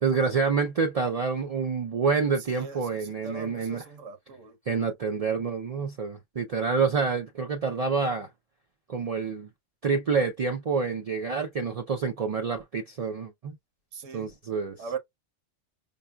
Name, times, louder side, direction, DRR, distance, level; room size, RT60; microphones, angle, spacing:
voice 1, 0.0-3.8 4.7-8.3 8.9-9.5 9.8-13.6 14.1-14.8, right 5 dB, 60° right, 0.4 m, -27 dB
voice 2, 2.4-4.6 13.9-14.3 14.8-15.0, right 5 dB, 85° right, 1.2 m, -40 dB
5.3 x 2.1 x 2.2 m
omnidirectional pair, 1.3 m